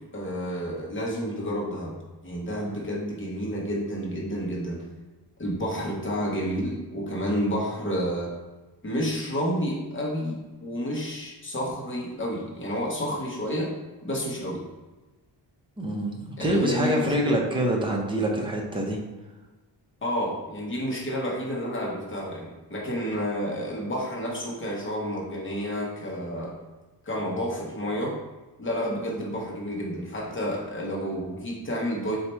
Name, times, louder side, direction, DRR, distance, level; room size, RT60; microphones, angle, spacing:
voice 1, 0.0-2.0 2.2-4.8 5.4-8.3 8.8-13.7 14.0-14.6 16.4-17.3 20.0-26.5 27.0-28.2 28.6-32.2, equal, 30° left, -3 dB, 0.9 m, -30 dB
voice 2, 15.8-19.0, equal, 10° right, -1 dB, 0.6 m, -25 dB
4.1 x 2.4 x 4.4 m, 1.2 s
wide cardioid pair, 155°, 42 cm